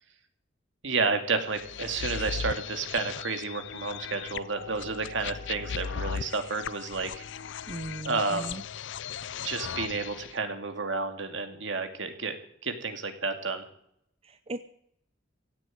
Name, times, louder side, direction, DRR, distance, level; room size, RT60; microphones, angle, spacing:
voice 1, 0.8-7.2 8.0-8.6 9.4-13.7, right 4 dB, 65° right, 7 dB, 2.3 m, -31 dB
sound 1, 1.5-10.3, left 7 dB, 65° left, 0.5 m, -37 dB
voice 2, 7.7-8.6 14.2-14.6, right 1 dB, 30° right, 10 dB, 0.7 m, -38 dB
16.5 x 7.7 x 9.2 m, 0.70 s
head